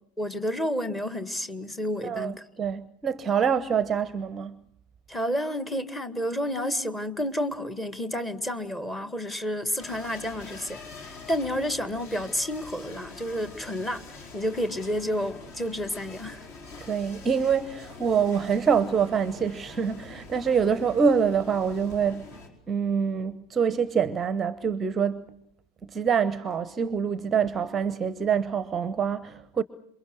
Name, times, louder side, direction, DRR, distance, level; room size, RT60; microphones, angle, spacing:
voice 1, 0.2-2.4 5.1-10.8 11.3-14.0 14.3-16.4, equal, 10° left, 1.8 m, -30 dB
voice 2, 2.0-4.6 16.8-22.3 22.7-25.3 25.8-29.6, right 6 dB, 20° right, 0.9 m, -25 dB
sound 1, 9.8-22.5, left 3 dB, 45° left, 4.7 m, -45 dB
27.5 x 24.0 x 6.3 m
figure-of-eight pair, 90°, 0 cm